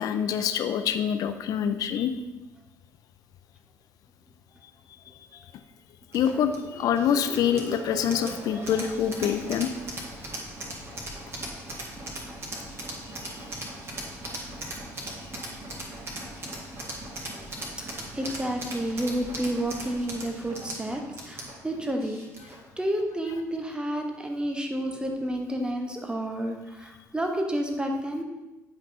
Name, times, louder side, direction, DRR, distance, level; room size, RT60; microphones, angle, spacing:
voice 1, 0.0-2.1 6.1-9.7 13.2-13.4, left 8 dB, 50° left, 9 dB, 0.5 m, -26 dB
sound 1, 6.1-22.7, right 1 dB, 30° right, 1.8 m, -38 dB
voice 2, 17.8-28.2, right 1 dB, 10° right, 3 dB, 1.1 m, -30 dB
9.6 x 5.3 x 2.8 m, 1.1 s
figure-of-eight pair, 50°, 8 cm